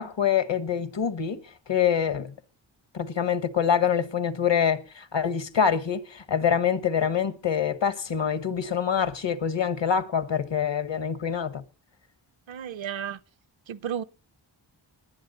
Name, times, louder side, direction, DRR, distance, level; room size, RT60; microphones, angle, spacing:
voice 1, 0.0-2.3 2.9-11.6, left 7 dB, 65° left, 1.4 m, -25 dB
voice 2, 12.5-13.2 13.7-14.0, right 9 dB, 70° right, 0.8 m, -33 dB
20.5 x 7.7 x 4.0 m
cardioid pair, 50°, 48 cm